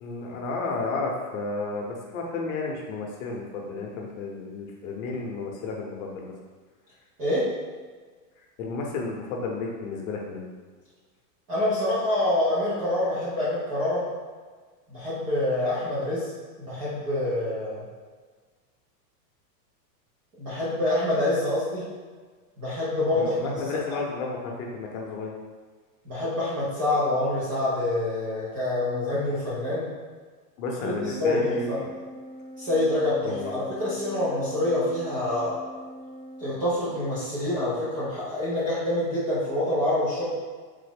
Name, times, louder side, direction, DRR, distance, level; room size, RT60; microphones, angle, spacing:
voice 1, 0.0-6.3 8.6-10.4 23.1-25.3 30.6-31.9 33.2-33.5, left 3 dB, 55° left, -1 dB, 0.8 m, -32 dB
voice 2, 7.2-7.5 11.5-14.0 14.9-16.3 16.6-17.8 20.4-21.9 22.6-23.5 23.9-24.0 26.1-29.9 30.8-31.8 32.6-35.6 36.4-40.3, left 1 dB, 20° right, -10 dB, 0.4 m, -26 dB
Organ, 30.9-37.4, equal, 65° right, 0.7 m, -43 dB
3.6 x 2.0 x 3.3 m, 1.5 s
supercardioid pair, 150°, 50 cm